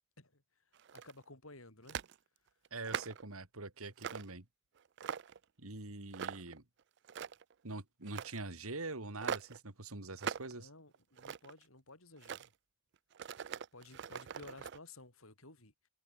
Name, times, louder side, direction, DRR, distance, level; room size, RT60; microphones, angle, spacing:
voice 1, 0.2-2.0 10.4-12.5 13.7-15.9, left 2 dB, 75° left, 7.0 m, -55 dB
sound 1, 0.8-1.2 1.9-2.1 2.6-3.3 4.0-4.3 4.8-5.4 6.1-6.6 7.0-7.5 8.1-8.4 9.2-9.6 10.2-10.5 10.9-11.6 12.2-12.5 13.1-14.8, right 7 dB, 50° right, 0.4 m, -42 dB
voice 2, 2.7-4.5 5.6-6.6 7.6-10.7, right 3 dB, 80° right, 2.7 m, -44 dB
head